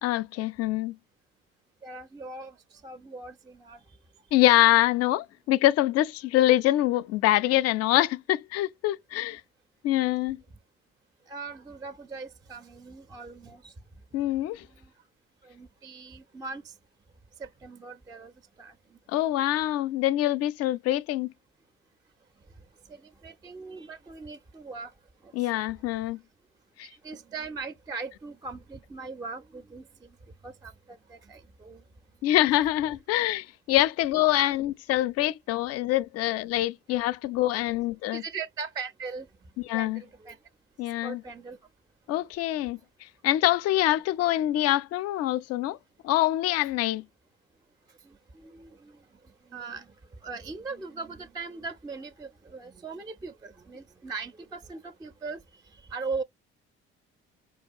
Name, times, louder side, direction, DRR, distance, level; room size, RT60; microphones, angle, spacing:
voice 1, 0.0-1.0 4.3-9.4 9.8-10.4 14.1-14.7 19.1-21.3 25.3-26.2 26.8-26.9 32.2-38.2 39.6-40.0 40.8-41.2 42.1-42.8 43.2-45.8 46.0-47.0, left 15 dB, 50° left, 0.4 m, -25 dB
voice 2, 1.8-2.6 2.8-3.8 11.3-13.7 15.4-16.7 17.4-18.3 18.6-18.7 22.9-24.9 25.4-25.5 27.0-30.1 30.4-31.8 32.3-32.7 34.3-34.4 38.1-39.3 39.7-40.4 41.0-41.6 48.1-49.0 49.5-49.9 50.2-55.4 55.9-56.2, right 4 dB, 15° right, 0.4 m, -39 dB
4.7 x 2.2 x 2.5 m
hypercardioid pair, 55°, 32 cm